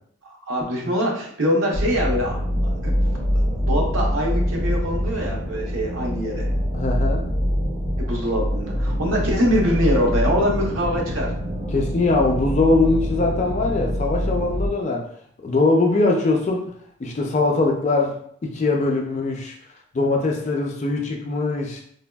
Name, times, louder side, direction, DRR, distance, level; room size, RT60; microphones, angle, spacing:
voice 1, 0.5-2.4 2.6-2.9 3.6-6.5 8.0-11.3, equal, 65° right, -1 dB, 0.7 m, -23 dB
sound 1, 1.7-14.7, equal, 25° right, 0.5 m, -25 dB
voice 2, 6.7-7.2 11.7-15.1 15.4-16.7 17.0-19.6 19.9-21.8, left 3 dB, 35° left, 1 dB, 0.3 m, -21 dB
sound 2, 8.4-13.9, right 1 dB, 85° right, 1.4 m, -36 dB
3.3 x 2.2 x 2.2 m, 0.63 s
head